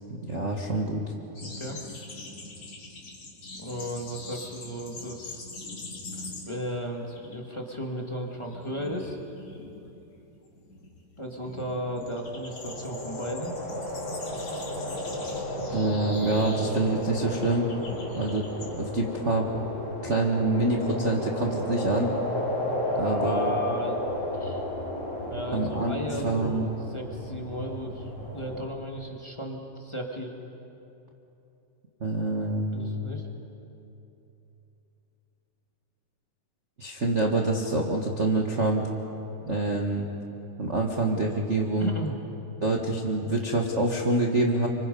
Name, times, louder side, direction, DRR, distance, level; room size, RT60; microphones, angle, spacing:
voice 1, 0.1-1.0 15.7-17.7 18.1-19.4 20.0-22.1 23.0-23.5 25.5-25.9 26.2-26.7 32.0-33.0 36.8-38.8 39.5-40.1 40.6-41.9 42.6-44.7, right 2 dB, 70° right, -1 dB, 0.6 m, -26 dB
sound 1, 1.4-6.7 7.0-7.4 7.7-18.7, left 2 dB, 45° left, 3.7 m, -43 dB
voice 2, 1.4-1.8 3.6-5.5 6.1-9.2 11.2-13.5 15.8-15.9 22.5-24.6 25.2-30.3 32.7-33.3 41.8-42.1, equal, 20° left, 0 dB, 0.8 m, -35 dB
sound 2, 11.6-28.6, left 1 dB, 60° left, 4.9 m, -33 dB
29.5 x 25.5 x 5.4 m, 3.0 s
omnidirectional pair, 4.0 m